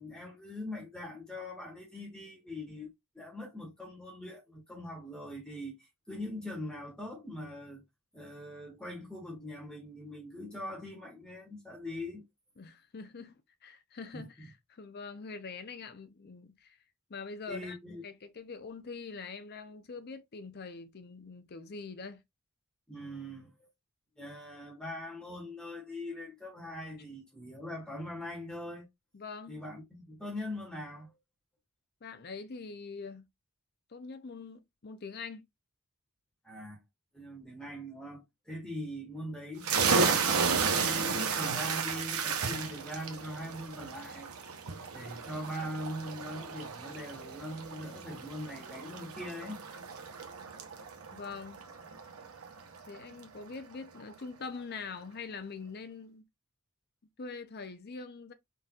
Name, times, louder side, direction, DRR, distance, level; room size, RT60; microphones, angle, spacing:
voice 1, 0.0-2.9 3.1-7.8 8.1-12.2 14.1-14.3 17.5-18.0 22.9-23.7 24.2-28.9 29.5-31.1 36.4-36.8 37.1-40.2 40.5-44.3 44.9-49.8, left 1 dB, 5° left, 1.7 m, -42 dB
voice 2, 12.6-16.8 17.1-17.8 18.0-22.2 29.1-29.6 32.0-33.3 33.9-35.5 51.1-51.6 52.9-56.2 57.2-58.3, left 4 dB, 45° left, 0.6 m, -44 dB
sound 1, 39.6-53.0, right 5 dB, 75° right, 0.9 m, -33 dB
4.0 x 3.9 x 2.3 m
head